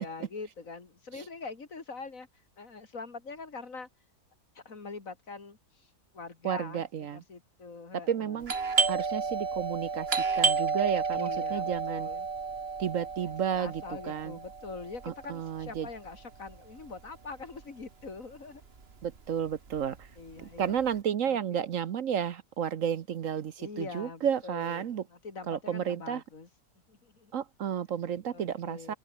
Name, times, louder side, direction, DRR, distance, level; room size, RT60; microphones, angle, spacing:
voice 1, 0.0-3.9 4.5-8.7 11.1-12.3 13.2-18.6 20.2-20.8 21.2-21.7 23.6-26.5 26.9-27.4 28.3-29.0, left 4 dB, 60° left, 3.0 m, -44 dB
voice 2, 6.4-7.2 8.1-8.5 8.9-10.1 10.3-12.1 12.8-14.3 15.3-15.9 19.0-20.1 20.4-25.0 25.5-26.2 27.3-28.9, right 8 dB, 60° right, 1.2 m, -32 dB
Doorbell, 8.4-17.8 18.1-18.2 18.8-19.2 19.5-20.9, right 5 dB, 40° right, 1.9 m, -31 dB
omnidirectional pair, 1.6 m